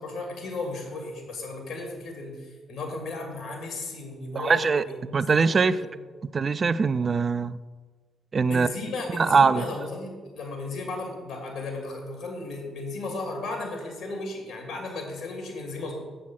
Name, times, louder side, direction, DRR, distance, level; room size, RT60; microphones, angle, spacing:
voice 1, 0.0-5.8 8.4-15.9, left 2 dB, 70° left, 1 dB, 2.6 m, -35 dB
voice 2, 4.4-4.8 5.1-5.8 6.2-7.6 8.3-8.7 9.1-9.7, right 5 dB, 45° right, 13 dB, 0.4 m, -22 dB
7.7 x 7.3 x 5.7 m, 1.4 s
hypercardioid pair, 40°, 0 cm